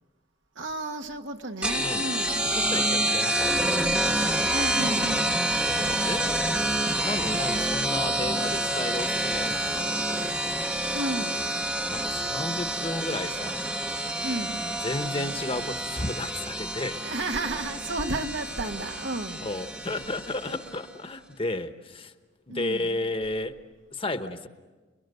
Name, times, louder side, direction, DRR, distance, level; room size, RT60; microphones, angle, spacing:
voice 1, 0.6-2.4 4.5-5.4 10.8-11.5 14.2-14.7 16.9-19.5 22.5-23.0, right 2 dB, 85° right, 1.8 m, -33 dB
sound 1, 1.6-20.8, right 1 dB, 5° right, 0.8 m, -28 dB
voice 2, 2.4-3.8 5.7-6.4 6.8-10.8 11.9-13.6 14.6-17.0 19.4-22.1 22.5-23.6 23.9-24.5, left 2 dB, 30° left, 1.1 m, -33 dB
29.5 x 22.0 x 8.0 m
head